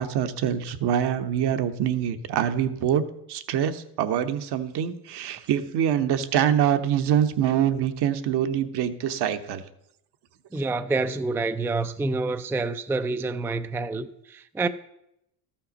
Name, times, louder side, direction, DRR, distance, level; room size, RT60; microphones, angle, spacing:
voice 1, 0.0-3.0 3.3-9.6, right 9 dB, 60° right, 1.1 m, -25 dB
voice 2, 10.5-14.7, right 3 dB, 5° right, 0.4 m, -27 dB
13.5 x 5.8 x 5.1 m
supercardioid pair, 75°, 46 cm